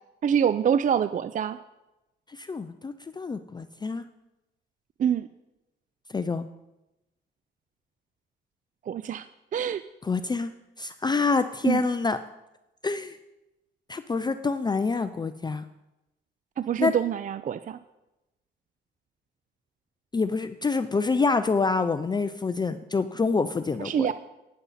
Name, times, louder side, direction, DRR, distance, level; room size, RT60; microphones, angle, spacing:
voice 1, 0.2-1.6 5.0-5.3 8.9-9.3 9.5-9.8 11.6-11.8 16.6-17.8 23.8-24.1, right 8 dB, 40° right, 13 dB, 0.4 m, -25 dB
voice 2, 2.3-4.0 6.1-6.5 10.0-10.5 10.8-12.2 12.8-13.2 13.9-15.6 16.8-16.9 20.1-24.1, left 4 dB, 20° left, 10 dB, 0.5 m, -27 dB
11.0 x 9.6 x 4.1 m, 0.95 s
cardioid pair, 90°, 20 cm